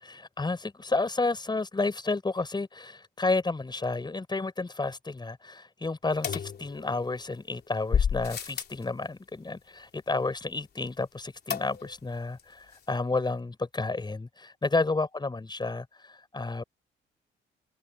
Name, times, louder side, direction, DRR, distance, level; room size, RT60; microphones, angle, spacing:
voice 1, 0.0-16.6, left 3 dB, 20° left, 5.9 m, -31 dB
sound 1, 6.2-7.2 7.9-8.8 11.5-12.1 12.4-12.5 12.7-12.8, left 7 dB, 55° left, 3.4 m, -30 dB
cardioid pair, 90°, 20 cm